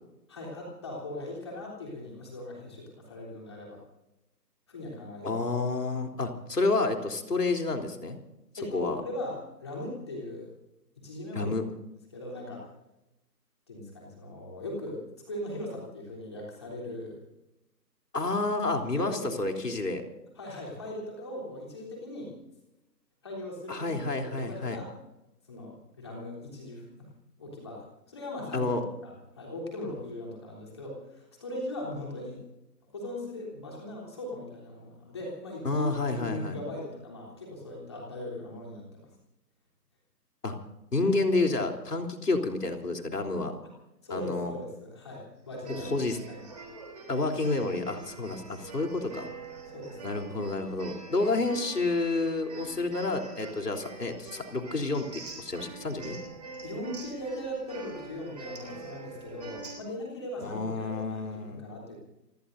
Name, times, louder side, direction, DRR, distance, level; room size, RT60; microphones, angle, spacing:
voice 1, 0.3-3.8 4.7-5.4 8.6-10.5 11.0-11.5 12.1-12.7 13.7-17.2 18.9-19.3 20.4-22.3 23.2-24.9 25.5-27.1 27.4-28.7 29.0-32.4 32.9-39.0 44.0-46.5 49.7-50.2 56.6-62.0, left 1 dB, 15° left, -3 dB, 3.5 m, -39 dB
voice 2, 5.2-8.2 8.7-9.0 11.3-11.6 18.1-20.0 23.7-24.8 28.5-28.8 35.6-36.6 40.4-40.6 40.9-43.5 44.1-44.5 45.7-46.2 47.1-49.3 50.0-56.2 60.4-61.6, left 3 dB, 70° left, 3 dB, 3.6 m, -29 dB
sound 1, 45.5-59.8, right 3 dB, 25° right, 3.4 m, -45 dB
28.5 x 19.0 x 2.7 m, 0.94 s
figure-of-eight pair, 180°, 50 cm